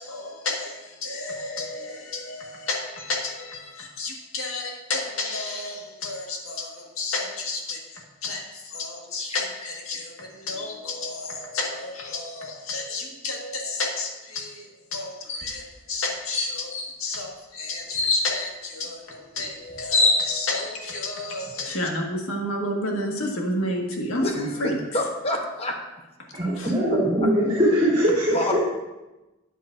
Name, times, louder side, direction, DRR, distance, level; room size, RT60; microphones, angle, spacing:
voice 1, 0.0-24.8 26.6-26.7, left 2 dB, 90° left, 0 dB, 1.8 m, -31 dB
sound 1, 15.3-15.5 15.9-16.0 16.3-16.9 17.9-18.2 19.4-19.5 19.7-20.6, left 3 dB, 75° left, 1.8 m, -23 dB
voice 2, 24.2-25.8 28.3-28.6, left 1 dB, 30° left, 2 dB, 1.0 m, -28 dB
voice 3, 26.3-28.6, equal, 30° right, -9 dB, 2.7 m, -21 dB
12.0 x 8.8 x 2.6 m, 1.1 s
head